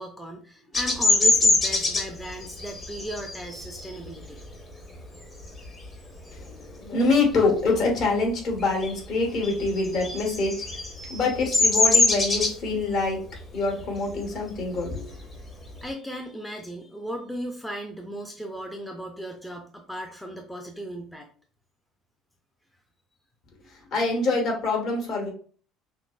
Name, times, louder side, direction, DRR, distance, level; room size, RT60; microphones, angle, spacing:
voice 1, 0.0-4.5 15.8-21.3 23.6-23.7, equal, 5° left, 2 dB, 0.5 m, -36 dB
Bird vocalization bird call bird song, 0.7-5.9 6.4-6.7 7.0-8.2 8.5-15.9, left 2 dB, 25° left, 0.9 m, -24 dB
voice 2, 6.3-10.6 11.1-13.2 13.5-15.0 23.9-25.3, left 3 dB, 55° left, 0 dB, 1.5 m, -25 dB
5.8 x 2.0 x 2.4 m, 0.44 s
cardioid pair, 145°, 0 cm